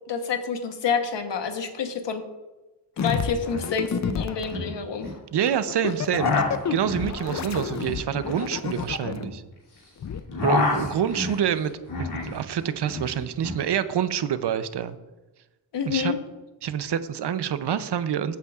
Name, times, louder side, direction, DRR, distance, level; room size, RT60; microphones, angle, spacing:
voice 1, 0.1-2.2 3.0-5.1 15.7-16.2, left 6 dB, 85° left, 6 dB, 1.1 m, -28 dB
sound 1, 3.0-3.1 3.3-3.7 4.0-5.2 5.9-9.8 10.1-12.4 12.6-13.6, left 3 dB, 65° left, 2.8 m, -29 dB
sound 2, 3.0-4.5 5.5-9.2 10.0-10.2, left 7 dB, 45° left, 0.5 m, -30 dB
voice 2, 5.3-9.4 10.4-11.7 12.0-15.0 15.9-16.1 16.6-18.4, right 9 dB, 70° right, 12 dB, 0.6 m, -27 dB
14.5 x 8.3 x 2.4 m, 1.1 s
wide cardioid pair, 125°, 42 cm